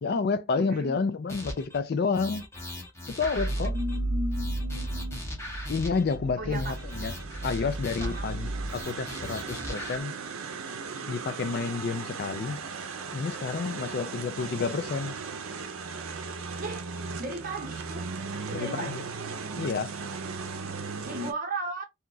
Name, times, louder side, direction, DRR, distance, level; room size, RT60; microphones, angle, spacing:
voice 1, 0.0-2.4 3.1-3.7 5.7-7.1 7.4-10.1 11.1-12.6 13.1-15.1 18.5-19.0 19.6-19.9, left 4 dB, 50° left, 0.4 m, -30 dB
voice 2, 0.5-1.0 3.7-5.2 6.4-6.8 8.0-8.3 13.8-14.2 16.6-16.9 17.2-18.1 18.5-19.0 21.0-21.8, right 1 dB, 40° right, 0.9 m, -36 dB
sound 1, 1.3-1.8 2.1-4.0 4.3-6.2 6.5-8.3 8.7-10.0, left 1 dB, 15° left, 0.8 m, -40 dB
sound 2, 3.4-8.8, right 1 dB, 65° left, 1.3 m, -33 dB
sound 3, 6.6-21.3, right 5 dB, 85° right, 0.6 m, -37 dB
2.8 x 2.3 x 3.9 m
head